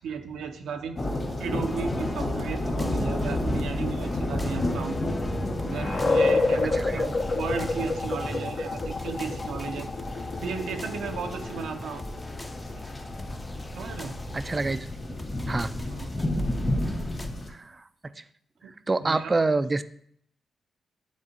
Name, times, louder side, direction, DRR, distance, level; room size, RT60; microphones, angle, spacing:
voice 1, 0.0-1.0 1.4-5.0 5.6-9.9 10.4-12.0 12.7-12.8 13.7-14.2 15.8-16.1 18.6-18.7 19.0-19.4, right 6 dB, 85° right, 6 dB, 0.6 m, -35 dB
sound 1, 1.0-17.5, left 1 dB, 40° left, 1.9 m, -32 dB
sound 2, 1.6-17.3, left 1 dB, 20° left, 0.7 m, -42 dB
sound 3, 3.4-14.8, left 3 dB, 55° left, 1.0 m, -31 dB
voice 2, 6.7-7.0 14.3-14.9 15.5-15.7 17.5-17.8 18.2-18.3 18.9-19.8, right 3 dB, 30° right, 14 dB, 0.4 m, -27 dB
9.0 x 3.7 x 4.3 m, 0.68 s
cardioid pair, 65°, 0 cm